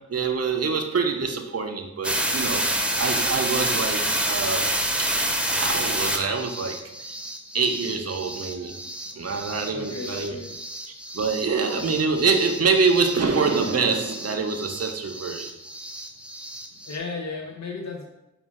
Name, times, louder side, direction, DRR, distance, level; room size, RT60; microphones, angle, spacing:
voice 1, 0.1-2.7 3.0-4.7 5.0-5.1 5.4-6.8 7.5-8.7 9.1-10.4 11.1-15.5, right 4 dB, 50° right, 5 dB, 0.6 m, -25 dB
sound 1, 2.0-17.0, right 1 dB, 5° right, 0.5 m, -29 dB
voice 2, 9.7-10.6 16.8-18.0, left 4 dB, 60° left, 0 dB, 0.6 m, -35 dB
5.1 x 2.4 x 3.6 m, 0.92 s
wide cardioid pair, 45°, 31 cm